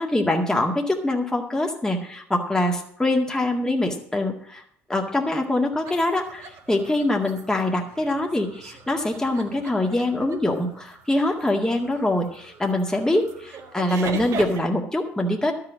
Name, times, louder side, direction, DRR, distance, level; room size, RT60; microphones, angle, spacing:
voice 1, 0.0-4.6 4.9-15.5, left 1 dB, 10° left, 1 dB, 1.9 m, -24 dB
sound 1, 5.8-14.6, right 5 dB, 55° right, 1.8 m, -40 dB
12.5 x 6.0 x 7.6 m, 0.65 s
hypercardioid pair, 60°, 7 cm